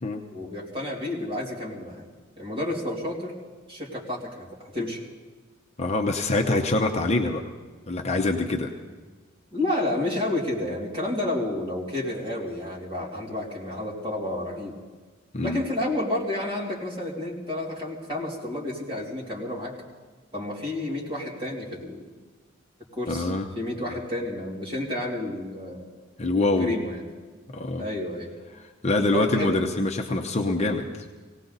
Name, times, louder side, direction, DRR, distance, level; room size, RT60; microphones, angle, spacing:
voice 1, 0.3-2.0 2.4-3.3 3.7-5.0 9.5-14.7 15.4-19.7 20.3-22.0 22.9-25.8 26.4-27.0 27.8-28.3 29.1-29.6, left 1 dB, 25° right, -4 dB, 3.0 m, -30 dB
voice 2, 5.8-7.4 7.9-8.7 15.3-15.6 23.1-23.5 26.2-26.7 27.5-27.8 28.8-30.9, left 2 dB, 35° left, 3 dB, 0.8 m, -24 dB
18.5 x 18.0 x 4.0 m, 1.4 s
head